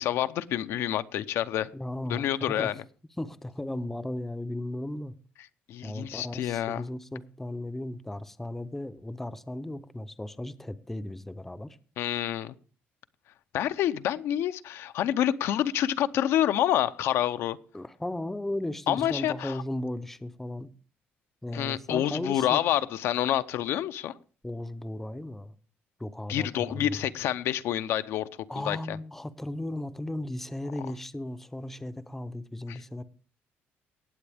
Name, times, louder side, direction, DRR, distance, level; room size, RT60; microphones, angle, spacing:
voice 1, 0.0-1.7 2.1-2.7 5.7-6.8 12.0-12.5 13.5-17.6 18.9-19.6 21.5-24.1 26.3-28.3 28.6-29.0 32.7-32.8, left 11 dB, 75° left, 0.6 m, -28 dB
voice 2, 1.7-2.7 3.2-5.1 5.8-11.8 17.7-20.7 21.4-22.6 24.4-25.5 26.0-27.0 28.5-33.0, left 1 dB, 5° left, 0.5 m, -36 dB
18.5 x 7.9 x 3.4 m
cardioid pair, 150°, 4 cm